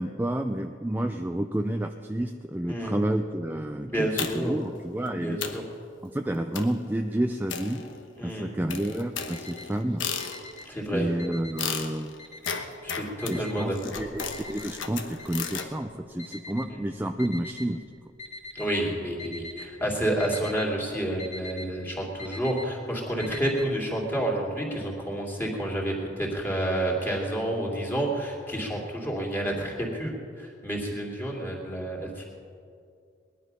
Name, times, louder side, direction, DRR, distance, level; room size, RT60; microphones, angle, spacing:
voice 1, 0.0-4.1 4.3-5.4 6.0-7.8 8.2-10.0 10.9-12.2 13.3-17.8, right 1 dB, 10° right, 5 dB, 0.4 m, -30 dB
voice 2, 3.8-4.6 5.1-5.6 8.2-8.5 10.6-11.1 12.8-14.0 16.7-16.8 18.5-32.3, right 1 dB, 10° left, -2 dB, 2.7 m, -30 dB
sound 1, 4.2-4.6 5.1-5.2 5.4-5.7 6.5-6.9 7.5-8.2 8.7-10.7 11.6-15.7, left 6 dB, 80° left, 1.1 m, -35 dB
Alarm, 9.2-9.8 10.1-11.8 12.2-12.8 13.2-17.7 18.2-18.8 19.1-19.7 20.0-23.7, left 2 dB, 35° left, 2.5 m, -43 dB
20.5 x 11.0 x 5.6 m, 2.3 s
head